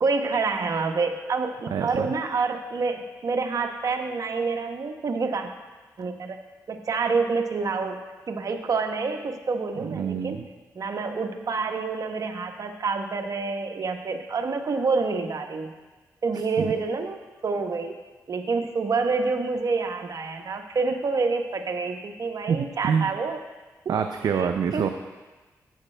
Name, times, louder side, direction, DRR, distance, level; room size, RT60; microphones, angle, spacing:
voice 1, 0.0-5.5 6.0-6.4 6.7-8.0 8.3-10.4 10.7-15.7 16.2-18.0 18.3-23.4 23.8-23.9 24.3-24.9, right 4 dB, 55° right, 5 dB, 1.0 m, -27 dB
voice 2, 1.7-2.1 9.8-10.4 16.6-16.7 22.5-23.1 23.9-24.9, right 7 dB, 80° right, 6 dB, 0.5 m, -26 dB
12.5 x 8.7 x 3.3 m, 1.3 s
cardioid pair, 65°, 7 cm